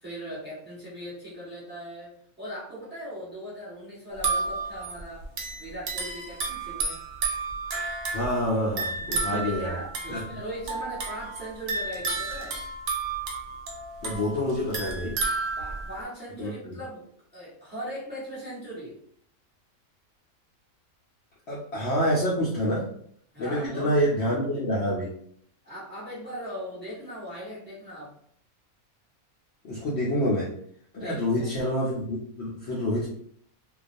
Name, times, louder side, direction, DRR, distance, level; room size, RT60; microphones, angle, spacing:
voice 1, 0.0-5.3 5.5-7.0 9.1-12.6 15.6-19.0 23.3-23.9 25.6-28.1 31.0-31.3, equal, 10° right, -8 dB, 1.1 m, -39 dB
sound 1, 4.1-16.0, right 3 dB, 60° right, 0.7 m, -32 dB
voice 2, 8.1-8.9 9.2-9.8 10.1-10.2 14.0-15.2 16.4-16.7 21.5-22.9 23.4-25.1 29.6-30.5 30.9-33.1, equal, 60° left, -6 dB, 0.7 m, -27 dB
2.3 x 2.3 x 2.5 m, 0.63 s
omnidirectional pair, 1.5 m